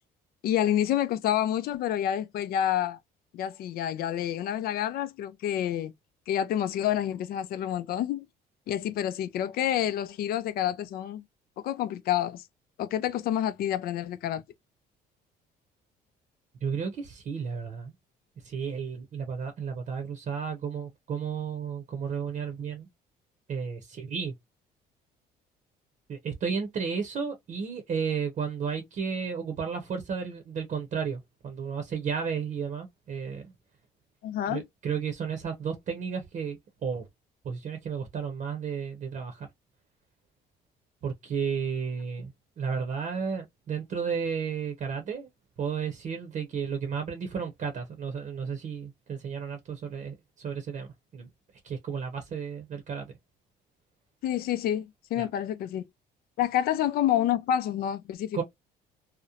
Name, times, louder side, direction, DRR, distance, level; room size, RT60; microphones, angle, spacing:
voice 1, 0.4-3.0 3.3-5.9 6.3-8.3 8.7-11.2 11.6-12.4 12.8-14.4 34.2-34.6 54.2-55.9 56.4-58.4, left 11 dB, 65° left, 0.4 m, -28 dB
voice 2, 16.6-17.9 18.4-22.9 23.5-24.3 26.1-33.5 34.5-37.1 37.4-39.5 41.0-42.3 42.6-45.3 45.6-50.9 51.1-51.3 51.6-53.1 55.2-55.3 58.3-58.4, right 6 dB, 45° right, 0.7 m, -33 dB
2.9 x 2.0 x 2.3 m
cardioid pair, 110°, 17 cm